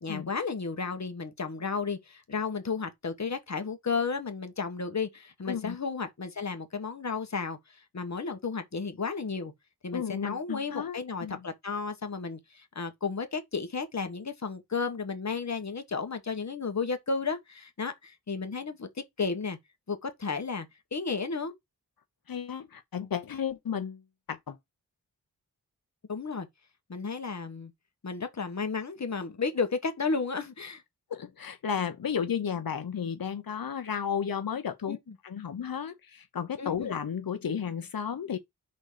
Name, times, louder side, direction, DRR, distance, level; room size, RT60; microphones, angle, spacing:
voice 1, 0.0-9.5 9.8-18.9 19.2-19.6 19.9-20.7 20.9-21.5 26.1-26.5 26.9-27.7 28.0-30.8 34.9-35.1 36.6-36.9, left 4 dB, 45° left, 1.4 m, -33 dB
voice 2, 5.5-5.8 9.9-11.4 22.3-24.0 24.3-24.6 31.1-35.0 35.2-38.4, left 7 dB, 65° left, 1.0 m, -33 dB
5.4 x 4.0 x 5.0 m
wide cardioid pair, 75°, 37 cm